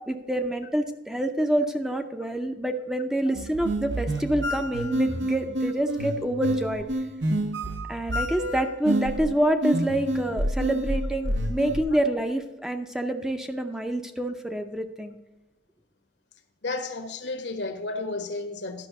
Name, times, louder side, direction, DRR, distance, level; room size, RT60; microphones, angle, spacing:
voice 1, 0.1-6.9 7.9-15.2, right 1 dB, 5° right, 0.6 m, -27 dB
sound 1, 3.3-11.8, right 1 dB, 75° right, 1.0 m, -28 dB
voice 2, 16.6-18.9, left 3 dB, 70° left, 1.2 m, -32 dB
11.5 x 5.6 x 6.5 m
head